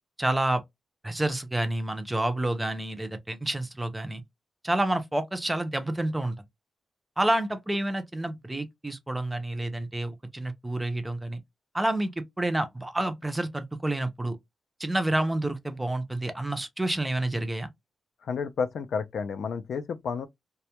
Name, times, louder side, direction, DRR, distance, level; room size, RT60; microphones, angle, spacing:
voice 1, 0.2-0.6 1.0-4.2 4.6-6.4 7.2-11.4 11.7-14.4 14.8-17.7, right 1 dB, 10° right, 0.4 m, -29 dB
voice 2, 18.2-20.3, left 5 dB, 80° left, 0.3 m, -31 dB
2.1 x 2.1 x 2.8 m
wide cardioid pair, 170°, 0 cm